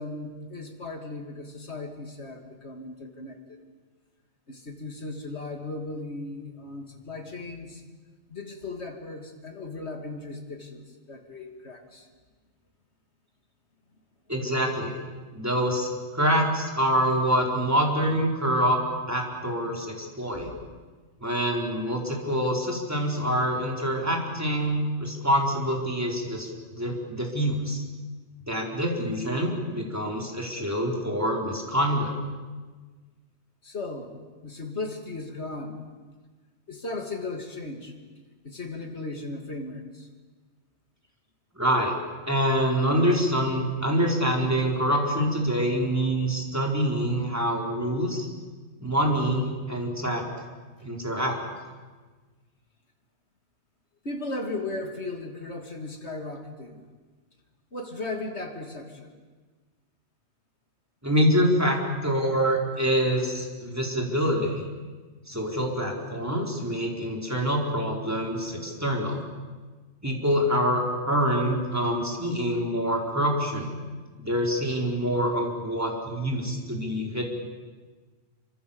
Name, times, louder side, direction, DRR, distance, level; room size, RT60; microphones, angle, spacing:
voice 1, 0.0-3.6 4.5-7.8 8.3-10.8 11.1-12.1 20.3-20.5 33.6-34.2 34.4-35.8 36.7-37.9 38.4-40.1 54.0-56.8 57.7-59.2, left 2 dB, 60° left, 3 dB, 3.1 m, -36 dB
voice 2, 14.3-14.9 15.3-15.9 16.1-18.8 19.1-20.5 21.2-27.8 28.5-32.1 41.5-41.9 42.3-48.3 48.8-50.2 50.8-51.4 61.0-64.6 65.3-69.2 70.0-73.8 74.2-77.2, equal, 10° right, 0 dB, 4.3 m, -26 dB
27.0 x 25.0 x 7.2 m, 1.4 s
omnidirectional pair, 1.3 m